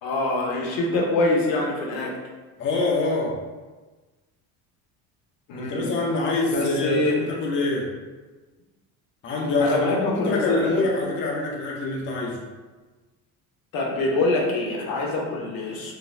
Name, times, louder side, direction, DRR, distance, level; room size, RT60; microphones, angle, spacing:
voice 1, 0.0-2.1 5.5-5.9 6.5-7.2 9.6-10.8 13.7-15.9, left 2 dB, 70° left, -1 dB, 0.8 m, -25 dB
voice 2, 2.6-3.4 5.6-7.9 9.2-12.4, left 3 dB, 35° left, -3 dB, 0.5 m, -25 dB
3.9 x 2.1 x 2.5 m, 1.3 s
cardioid pair, 125°, 36 cm